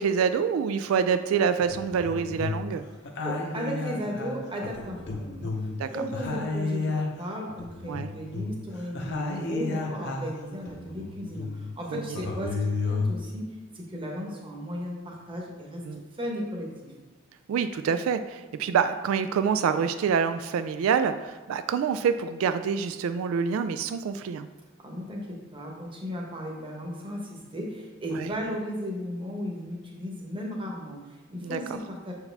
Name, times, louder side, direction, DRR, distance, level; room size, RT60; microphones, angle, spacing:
voice 1, 0.0-2.8 5.8-5.9 7.9-8.1 11.9-12.0 15.8-16.0 17.5-24.5 28.1-28.3 31.4-31.6, right 6 dB, 85° right, 11 dB, 0.3 m, -26 dB
sound 1, 1.4-2.8 3.0-5.8 6.1-10.4 10.7-11.7 12.1-13.3, left 3 dB, 55° left, 0.8 m, -32 dB
voice 2, 3.2-5.5 5.8-12.6 12.9-13.5 13.7-15.8 16.2-16.9 24.8-32.1, equal, 25° right, -1 dB, 1.0 m, -35 dB
6.6 x 4.7 x 3.4 m, 1.2 s
head